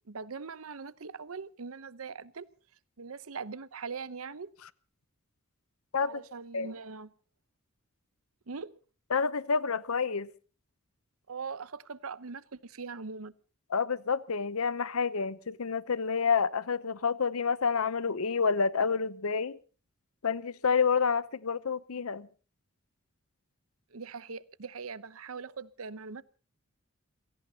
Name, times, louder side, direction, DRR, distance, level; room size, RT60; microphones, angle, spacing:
voice 1, 0.0-2.5 3.0-4.5 6.0-7.1 8.5-8.7 11.3-13.3 23.9-26.2, right 5 dB, 75° right, 0.8 m, -41 dB
voice 2, 9.1-10.3 13.7-19.6 20.2-22.3, left 5 dB, 80° left, 0.8 m, -29 dB
29.0 x 17.5 x 2.9 m
head